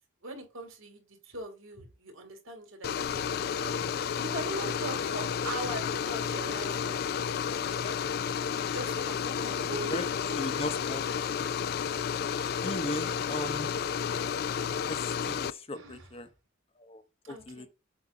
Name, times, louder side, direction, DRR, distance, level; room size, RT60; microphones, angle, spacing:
voice 1, 0.2-3.7 4.2-7.1 8.6-10.4 15.7-16.1 17.2-17.7, right 1 dB, 85° right, 2.6 m, -41 dB
sound 1, 2.8-15.5, left 7 dB, 50° left, 0.3 m, -31 dB
voice 2, 9.3-9.6 9.8-10.0 10.4-11.0 12.6-13.8 14.9-16.3 16.8-17.7, left 1 dB, 30° left, 0.8 m, -37 dB
7.8 x 2.7 x 5.9 m
head